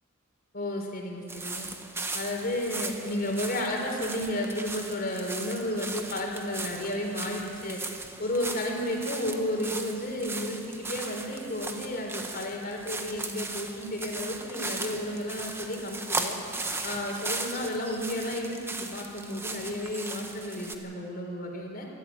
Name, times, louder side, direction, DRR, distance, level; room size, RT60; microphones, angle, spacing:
voice 1, 0.5-1.7 2.1-7.8 8.2-16.4 16.8-21.9, left 1 dB, 45° left, 1 dB, 4.0 m, -32 dB
sound 1, 1.3-20.7, right 3 dB, 10° right, 1.2 m, -37 dB
24.5 x 13.5 x 8.7 m, 2.6 s
head